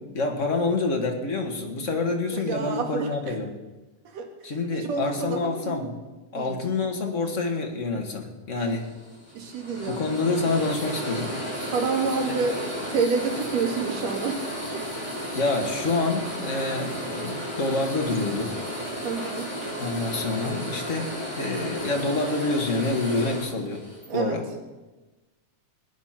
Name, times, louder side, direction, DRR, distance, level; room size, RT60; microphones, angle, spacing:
voice 1, 0.0-3.6 4.4-5.9 6.3-8.9 9.9-11.3 15.3-18.6 19.8-23.8 24.1-24.4, left 3 dB, 30° left, 3 dB, 1.5 m, -27 dB
voice 2, 2.4-3.3 4.0-4.3 4.7-5.9 6.3-6.6 9.3-10.0 11.7-14.4 14.7-14.9 19.0-19.5 24.1-24.4, right 5 dB, 60° right, 3 dB, 2.9 m, -28 dB
sound 1, 8.6-24.1, equal, 10° left, 5.8 m, -34 dB
20.5 x 9.6 x 5.9 m, 1.2 s
omnidirectional pair, 3.4 m